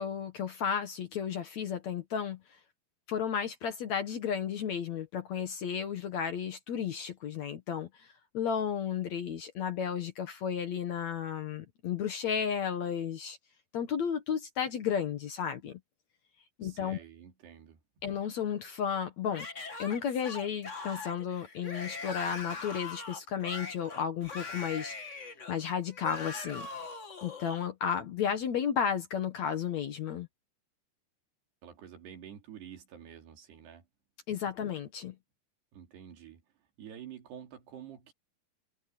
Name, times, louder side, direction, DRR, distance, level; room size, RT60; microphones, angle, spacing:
voice 1, 0.0-2.4 3.1-8.1 8.3-13.4 13.7-15.8 16.6-17.0 18.0-19.5 19.8-24.9 25.5-26.7 27.2-30.3 34.3-35.2, left 8 dB, 60° left, 2.0 m, -33 dB
voice 2, 16.6-17.8 31.6-33.9 35.7-36.4 36.8-38.1, right 9 dB, 80° right, 5.2 m, -48 dB
Yell / Screaming, 19.3-27.6, left 4 dB, 35° left, 1.1 m, -42 dB
omnidirectional pair, 4.7 m